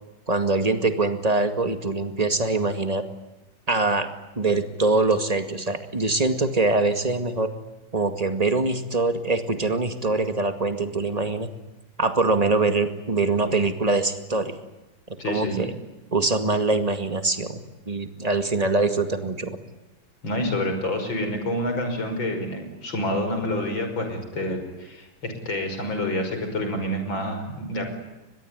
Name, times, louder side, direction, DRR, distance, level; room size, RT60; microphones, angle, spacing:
voice 1, 0.3-3.0 3.7-4.1 4.4-7.5 7.9-11.5 12.0-14.6 15.3-15.7 16.1-17.6 17.9-19.6, right 3 dB, 20° right, 8 dB, 2.1 m, -23 dB
voice 2, 15.2-15.6 20.2-27.9, left 1 dB, 65° left, 5 dB, 6.3 m, -28 dB
24.0 x 21.5 x 9.8 m, 1.0 s
omnidirectional pair, 2.2 m